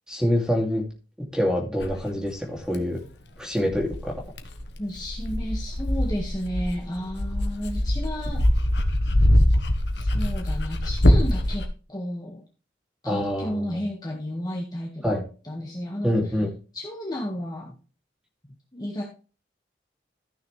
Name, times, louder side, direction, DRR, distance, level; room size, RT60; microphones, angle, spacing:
voice 1, 0.1-0.8 1.3-3.0 3.4-4.1 13.0-13.8 15.0-15.2 16.0-16.5, equal, 5° right, 0 dB, 2.6 m, -25 dB
Dog, 1.8-1.9 2.7-2.8 3.7-11.6, left 1 dB, 75° left, 1.3 m, -23 dB
voice 2, 4.8-8.4 10.0-12.4 13.0-15.2 15.4-16.2 16.7-17.8 18.7-19.0, equal, 20° left, -1 dB, 1.7 m, -32 dB
14.0 x 6.4 x 3.3 m, 0.35 s
head